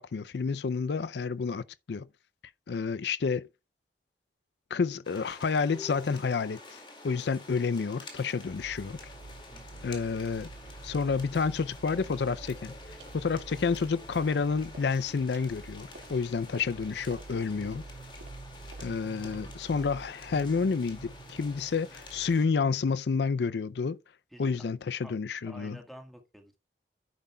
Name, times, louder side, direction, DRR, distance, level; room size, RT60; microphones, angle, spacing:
voice 1, 0.0-2.1 2.7-3.5 4.7-9.0 9.8-10.5 10.8-12.7 13.1-17.9 18.8-24.0 24.4-25.8, left 5 dB, 70° left, 0.4 m, -30 dB
sound 1, 5.0-22.5, left 2 dB, 25° left, 2.2 m, -49 dB
sound 2, 8.4-22.4, right 3 dB, 40° right, 0.4 m, -48 dB
voice 2, 9.5-10.0 24.3-24.6 25.0-25.1 25.4-26.6, equal, ahead, 1.5 m, -50 dB
sound 3, 12.3-12.6 13.0-13.2 13.6-14.4 14.7-20.2, right 2 dB, 90° right, 1.9 m, -54 dB
11.0 x 9.4 x 2.3 m
head